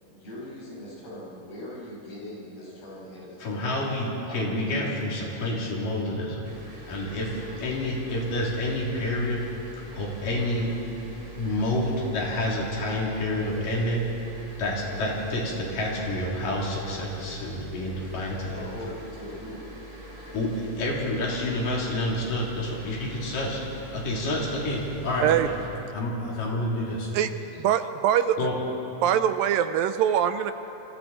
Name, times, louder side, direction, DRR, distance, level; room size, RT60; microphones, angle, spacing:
voice 1, 0.1-3.9 4.3-4.9 5.2-5.5 18.3-19.7 25.6-25.8 26.9-27.0, left 1 dB, 80° left, -6 dB, 8.4 m, -41 dB
voice 2, 3.4-6.4 6.9-9.5 9.9-10.7 11.4-14.1 14.6-18.5 20.3-23.6 23.9-25.6 25.9-27.1 28.4-28.6, left 1 dB, 65° left, -3 dB, 5.1 m, -28 dB
sound 1, 6.4-25.7, right 1 dB, 55° right, 8.3 m, -44 dB
voice 3, 27.6-28.4 29.0-30.5, right 10 dB, 80° right, 10 dB, 2.3 m, -23 dB
29.0 x 24.0 x 4.4 m, 2.9 s
omnidirectional pair, 4.3 m